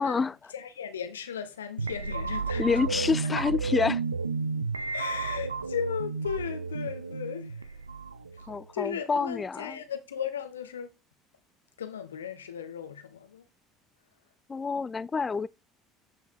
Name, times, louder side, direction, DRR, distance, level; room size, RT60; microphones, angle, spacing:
voice 1, 0.0-0.3 2.6-4.0 8.5-9.8 14.5-15.5, left 4 dB, 25° left, 0.4 m, -28 dB
voice 2, 0.5-3.0 4.9-7.8 8.3-8.5 8.7-10.9 11.8-13.4, left 8 dB, 80° left, 1.2 m, -36 dB
sound 1, 1.8-8.7, right 4 dB, 90° right, 0.4 m, -32 dB
8.9 x 5.6 x 4.6 m
figure-of-eight pair, 65°, 0 cm